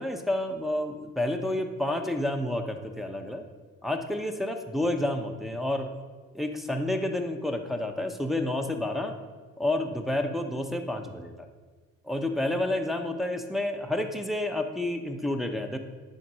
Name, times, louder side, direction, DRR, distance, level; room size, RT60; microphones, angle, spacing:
voice 1, 0.0-3.4 3.8-5.9 6.3-9.1 9.6-11.5 12.0-15.8, left 1 dB, ahead, 4 dB, 0.9 m, -29 dB
9.1 x 4.4 x 6.3 m, 1.4 s
cardioid pair, 90°, 30 cm